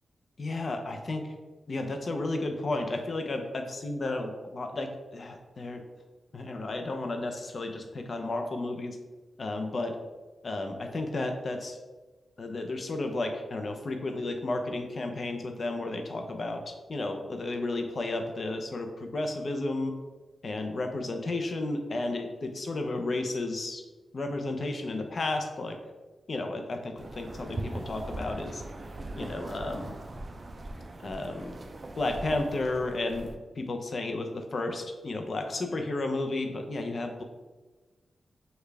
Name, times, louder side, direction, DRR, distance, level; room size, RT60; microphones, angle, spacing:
voice 1, 0.4-1.3 1.7-5.8 6.3-9.0 9.4-10.0 10.4-11.8 12.4-19.9 20.4-23.8 24.1-25.8 26.3-28.6 29.2-29.9 31.0-31.6 32.0-37.2, left 2 dB, 50° left, 5 dB, 0.6 m, -33 dB
sound 1, 27.0-33.4, right 2 dB, 35° right, 0.4 m, -40 dB
6.5 x 2.3 x 3.3 m, 1.3 s
cardioid pair, 85°, 0 cm